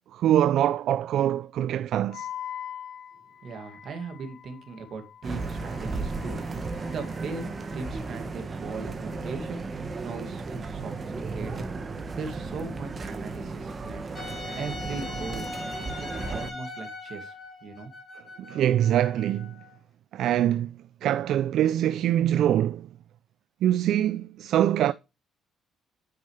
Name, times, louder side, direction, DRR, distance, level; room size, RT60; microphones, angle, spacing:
voice 1, 0.1-2.3 18.4-19.6 20.1-22.9 23.6-24.9, right 11 dB, 70° right, 0.3 m, -24 dB
Wind instrument woodwind instrument, 2.1-8.2, left 10 dB, 80° left, 1.4 m, -43 dB
voice 2, 3.4-11.7 12.1-14.1 14.5-15.5 16.0-17.4 17.6-17.9, right 4 dB, 55° right, 2.1 m, -39 dB
sound 1, 5.2-16.5, right 3 dB, 30° right, 1.2 m, -35 dB
Wind instrument woodwind instrument 2, 14.1-19.8, left 2 dB, 35° left, 3.4 m, -40 dB
9.4 x 5.3 x 3.2 m
cardioid pair, 110°, 0 cm